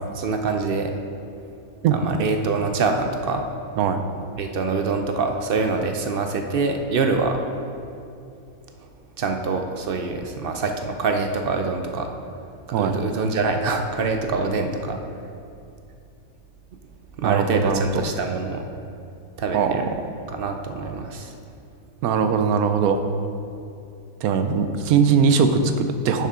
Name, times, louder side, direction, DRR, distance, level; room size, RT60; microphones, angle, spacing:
voice 1, 0.1-0.9 1.9-3.4 4.4-7.4 9.2-12.1 12.8-15.0 17.2-18.7 19.4-19.8 20.3-21.3, right 4 dB, 60° right, 5 dB, 0.6 m, -25 dB
voice 2, 17.2-17.9 19.5-19.8 22.0-23.0 24.2-26.3, right 6 dB, 85° right, 8 dB, 1.1 m, -20 dB
10.0 x 7.2 x 3.7 m, 2.6 s
omnidirectional pair, 1.5 m